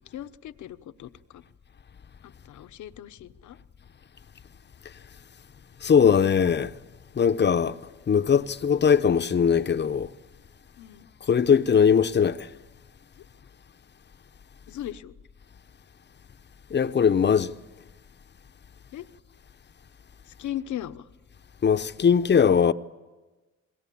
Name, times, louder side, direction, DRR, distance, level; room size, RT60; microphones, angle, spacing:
voice 1, 0.1-1.4 2.5-3.6 10.8-11.1 14.7-15.1 18.9-19.1 20.3-21.0, left 12 dB, 75° left, 1.0 m, -38 dB
voice 2, 5.8-6.7 7.1-7.8 8.1-10.1 11.2-12.5 16.7-17.6 21.6-22.7, left 7 dB, 35° left, 0.8 m, -20 dB
28.5 x 21.5 x 8.6 m
cardioid pair, 90°, 30 cm